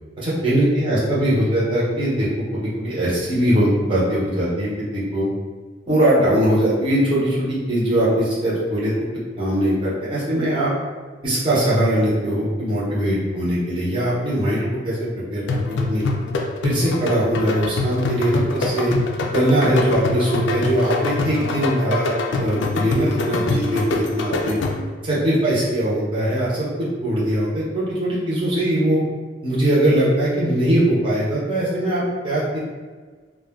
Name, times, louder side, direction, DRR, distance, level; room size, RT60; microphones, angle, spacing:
voice 1, 0.2-2.3 2.5-5.3 5.9-8.9 9.4-10.7 11.2-16.0 16.6-18.9 19.3-24.6 25.0-26.7 27.0-29.0 29.4-32.6, right 1 dB, 30° right, -8 dB, 0.7 m, -21 dB
sound 1, 15.5-25.0, left 3 dB, 80° left, 0.3 m, -25 dB
2.3 x 2.2 x 3.4 m, 1.4 s
head